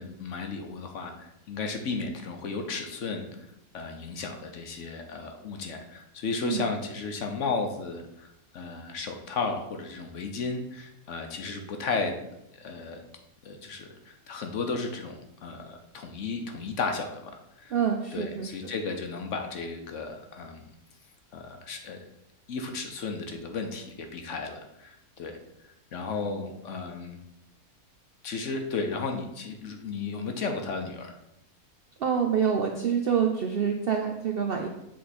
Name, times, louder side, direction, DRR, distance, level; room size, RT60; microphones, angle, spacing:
voice 1, 0.0-3.3 3.7-12.2 12.5-13.0 13.4-17.3 17.6-17.8 18.1-20.7 21.3-22.0 22.5-27.2 28.2-31.2, left 4 dB, 60° left, 5 dB, 1.0 m, -34 dB
voice 2, 17.7-18.7 32.0-34.7, right 7 dB, 65° right, 3 dB, 0.6 m, -27 dB
7.5 x 3.7 x 4.2 m, 0.85 s
omnidirectional pair, 1.6 m